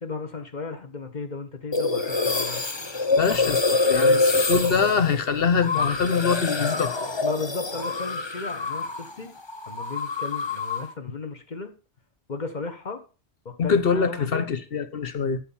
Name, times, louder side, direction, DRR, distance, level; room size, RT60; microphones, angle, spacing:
voice 1, 0.0-2.6 7.2-9.3 9.7-11.7 12.3-13.0 13.4-14.5, left 4 dB, 45° left, 1.6 m, -35 dB
sound 1, 1.7-9.1 9.4-10.9, left 3 dB, 25° left, 0.9 m, -25 dB
voice 2, 3.1-7.1 13.6-15.4, left 6 dB, 60° left, 1.3 m, -24 dB
13.0 x 4.6 x 7.2 m
omnidirectional pair, 1.1 m